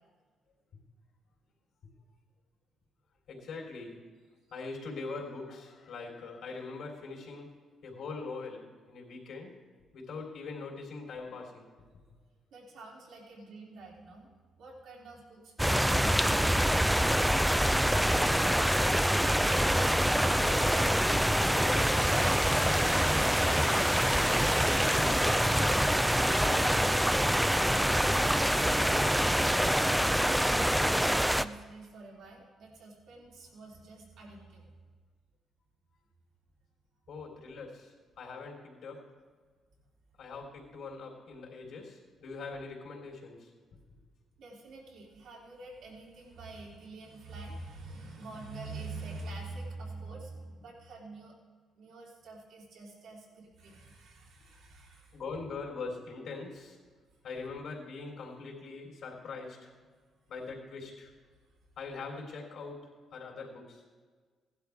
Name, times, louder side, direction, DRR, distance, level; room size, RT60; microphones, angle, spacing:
voice 1, 3.3-4.0 4.5-7.5 7.8-9.6 9.9-11.7 18.1-19.1 20.2-20.7 21.3-24.2 24.7-25.8 26.2-26.9 37.1-39.1 40.2-43.5 55.1-56.8 57.2-59.7 60.3-61.1 61.8-63.8, left 4 dB, 75° left, -3 dB, 3.5 m, -42 dB
voice 2, 12.5-14.3 14.6-16.9 29.6-34.8 44.4-51.3 51.8-55.2, right 2 dB, 75° right, -3 dB, 3.1 m, -46 dB
sound 1, 15.6-31.5, equal, 5° right, 0.4 m, -25 dB
16.5 x 11.5 x 3.6 m, 1.5 s
cardioid pair, 90°, 0 cm